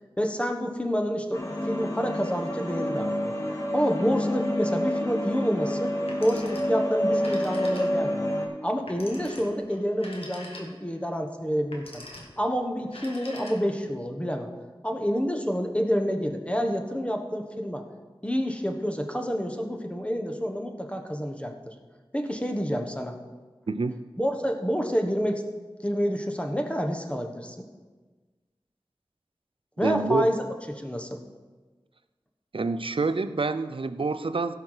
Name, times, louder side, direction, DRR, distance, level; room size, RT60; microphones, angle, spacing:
voice 1, 0.2-3.3 3.7-5.9 6.2-8.3 8.6-12.1 12.4-14.5 14.8-17.8 18.2-21.7 22.1-23.2 24.2-25.4 25.8-27.7 29.8-31.2, equal, 10° left, 4 dB, 1.3 m, -28 dB
sound 1, 1.3-8.5, equal, 30° left, 1.9 m, -28 dB
Telephone, 6.0-6.8 7.1-8.2 8.9-11.0 11.6-12.4 12.8-13.9, left 1 dB, 90° left, 1.7 m, -44 dB
voice 2, 23.7-24.0 29.8-30.3 32.5-34.5, right 3 dB, 65° right, 11 dB, 0.6 m, -27 dB
16.5 x 5.9 x 4.9 m, 1.3 s
wide cardioid pair, 60°, 10 cm